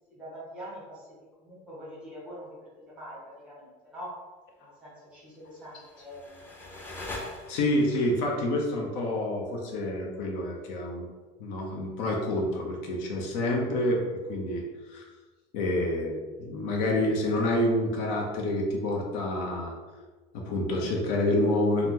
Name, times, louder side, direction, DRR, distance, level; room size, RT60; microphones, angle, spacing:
voice 1, 0.1-1.1 1.4-4.1 4.6-6.4, equal, 5° right, -8 dB, 0.9 m, -44 dB
sound 1, 5.6-8.0, left 2 dB, 10° left, 0.3 m, -41 dB
voice 2, 7.5-11.1 11.4-14.0 14.3-14.6 14.9-15.0 15.5-19.7 20.3-21.9, left 1 dB, 75° left, 0 dB, 0.6 m, -28 dB
2.8 x 2.0 x 3.5 m, 1.3 s
cardioid pair, 175°, 19 cm